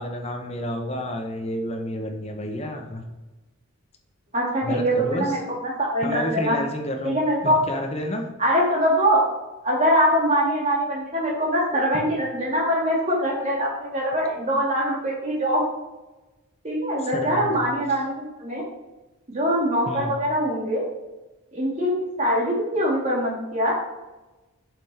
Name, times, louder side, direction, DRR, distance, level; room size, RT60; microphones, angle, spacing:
voice 1, 0.0-3.0 4.6-5.3 6.0-7.2 7.4-8.3 11.9-12.0 17.0-17.5 19.9-20.1, equal, 30° left, 3 dB, 0.9 m, -30 dB
voice 2, 4.3-6.6 7.0-7.6 8.4-9.2 9.6-15.7 16.6-18.6 19.3-20.8 21.5-23.7, equal, 30° right, -3 dB, 2.0 m, -23 dB
7.3 x 5.7 x 3.4 m, 1.1 s
head